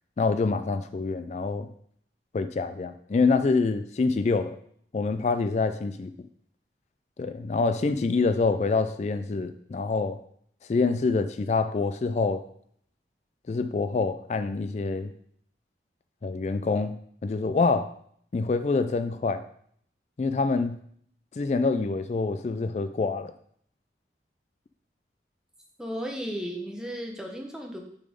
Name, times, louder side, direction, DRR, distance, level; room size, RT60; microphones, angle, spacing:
voice 1, 0.2-1.7 2.3-4.6 4.9-6.1 7.2-10.2 10.7-12.4 13.5-15.1 16.2-17.0 17.2-17.9 18.3-19.4 20.2-20.8 21.4-23.3, left 4 dB, 40° left, 10 dB, 0.3 m, -26 dB
voice 2, 25.8-27.8, equal, 5° right, 2 dB, 0.8 m, -34 dB
6.4 x 4.1 x 5.1 m, 0.64 s
head